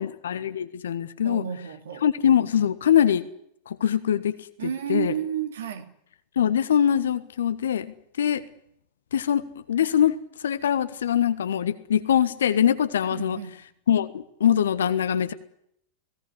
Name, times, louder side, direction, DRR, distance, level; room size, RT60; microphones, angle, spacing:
voice 1, 0.0-1.4 2.0-3.2 3.7-4.4 4.9-5.1 6.3-8.4 9.1-10.2 10.4-13.4 13.9-15.3, left 9 dB, 65° left, 1.4 m, -23 dB
voice 2, 1.2-2.0 4.6-5.9 13.1-13.5, right 9 dB, 65° right, 2.9 m, -31 dB
25.5 x 17.5 x 9.9 m
figure-of-eight pair, 90°, 0 cm